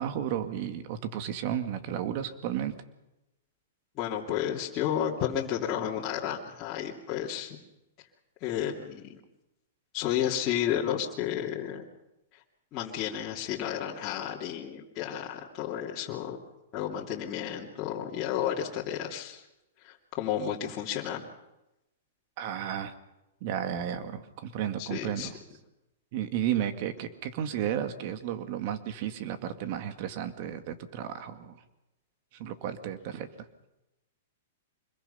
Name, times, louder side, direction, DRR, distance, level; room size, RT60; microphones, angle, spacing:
voice 1, 0.0-2.7 22.4-22.9 23.4-25.4 26.1-31.6 32.3-33.5, right 10 dB, 50° right, 9 dB, 2.1 m, -33 dB
voice 2, 3.9-7.6 8.4-9.2 9.9-11.8 12.3-12.4 12.7-16.4 16.7-19.5 19.8-21.2 24.8-25.3, left 10 dB, 35° left, -4 dB, 2.8 m, -32 dB
25.5 x 21.5 x 5.7 m, 0.94 s
hypercardioid pair, 140°, 0 cm